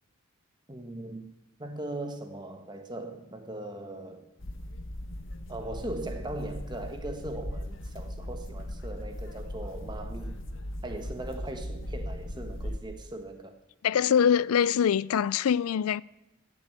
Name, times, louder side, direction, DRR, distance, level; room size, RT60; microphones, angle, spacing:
voice 1, 0.7-1.3 1.6-4.3 5.5-10.4 10.8-13.5, right 1 dB, 20° right, 1.4 m, -39 dB
sound 1, 4.4-12.8, left 1 dB, 60° left, 1.2 m, -38 dB
voice 2, 13.8-16.0, left 8 dB, 90° left, 0.4 m, -24 dB
15.0 x 7.1 x 8.9 m
head